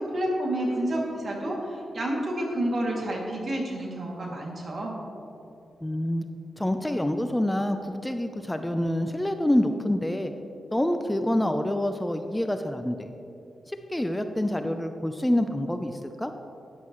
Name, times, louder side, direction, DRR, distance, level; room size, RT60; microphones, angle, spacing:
voice 1, 0.0-4.9, right 1 dB, 55° right, -2 dB, 2.5 m, -29 dB
voice 2, 5.8-6.2 6.6-10.3 10.7-13.1 13.7-16.3, left 1 dB, 10° left, 7 dB, 0.6 m, -27 dB
13.0 x 10.5 x 3.2 m, 2.7 s
cardioid pair, 70°, 0 cm